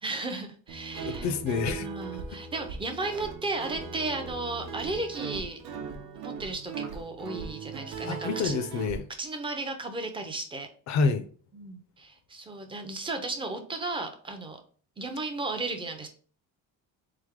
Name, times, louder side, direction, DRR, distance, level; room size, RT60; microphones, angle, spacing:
voice 1, 0.0-1.3 1.8-5.6 6.1-8.6 9.2-10.7 11.5-14.6 15.0-16.1, right 2 dB, 15° right, 0.5 m, -34 dB
Guitar, 0.7-9.0, right 5 dB, 85° right, 1.0 m, -39 dB
voice 2, 1.0-1.9 8.0-9.0 10.9-11.2, left 4 dB, 50° left, 0.5 m, -28 dB
3.8 x 3.4 x 3.6 m
cardioid pair, 160°, 37 cm